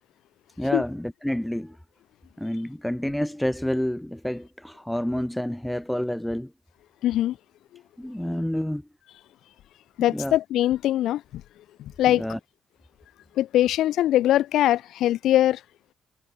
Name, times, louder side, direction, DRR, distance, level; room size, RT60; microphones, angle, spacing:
voice 1, 0.6-1.8 2.4-6.5 8.0-8.8 10.1-10.3 12.1-12.4, left 1 dB, 5° left, 1.0 m, -28 dB
voice 2, 7.0-7.4 10.0-11.4 11.8-12.2 13.4-15.6, left 13 dB, 80° left, 0.5 m, -22 dB
cardioid pair, 90°, 0 cm